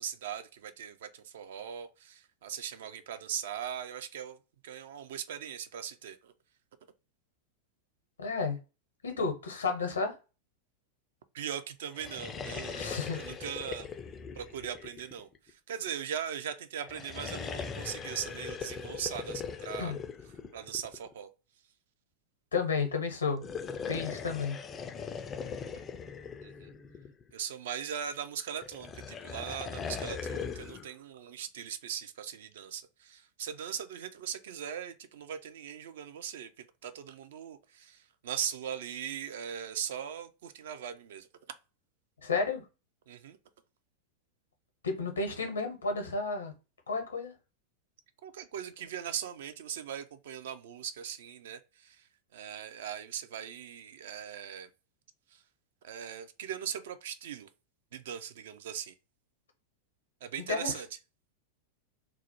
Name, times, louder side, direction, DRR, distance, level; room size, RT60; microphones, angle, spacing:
voice 1, 0.0-4.4 4.6-6.3 11.3-13.9 14.4-19.9 20.5-21.3 26.4-26.7 27.3-36.5 36.8-41.3 43.1-43.4 48.2-52.0 52.3-54.7 55.3-55.4 55.8-57.5 57.9-58.9 60.2-60.9, right 9 dB, 60° right, 0.3 m, -39 dB
voice 2, 8.2-8.6 9.0-10.1 12.7-13.2 19.8-20.0 22.5-23.4 23.9-24.6 42.2-42.6 44.8-46.5 46.9-47.3 60.5-60.8, left 4 dB, 70° left, 0.7 m, -32 dB
sound 1, 11.9-15.5 16.8-21.1 23.3-27.3 28.6-30.9, left 6 dB, 25° left, 0.3 m, -40 dB
2.2 x 2.0 x 2.8 m
figure-of-eight pair, 90°, 0 cm